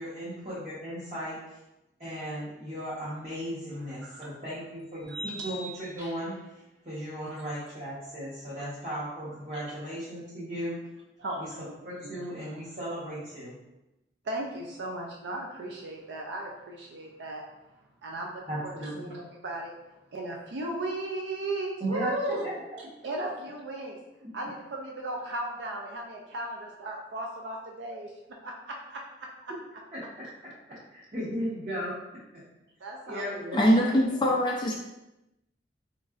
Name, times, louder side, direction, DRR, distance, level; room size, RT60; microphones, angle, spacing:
voice 1, 0.0-1.4 2.0-6.4 6.8-10.9 11.4-11.5 11.8-13.6 18.5-19.1 21.8-22.5 23.0-23.1 24.2-24.3 29.9-30.5 30.9-32.0 33.1-33.6, equal, 40° right, -10 dB, 0.9 m, -36 dB
sound 1, 3.4-3.5 5.0-6.5, right 1 dB, 15° right, 0.7 m, -41 dB
voice 2, 11.2-11.7 12.0-12.3 14.2-17.5 18.0-19.7 20.1-22.5 23.0-24.0 24.3-28.1 28.4-29.5 32.8-34.2, right 1 dB, 90° right, 0 dB, 0.4 m, -36 dB
voice 3, 33.5-34.7, equal, 25° left, -1 dB, 0.3 m, -23 dB
3.7 x 3.1 x 2.4 m, 0.95 s
head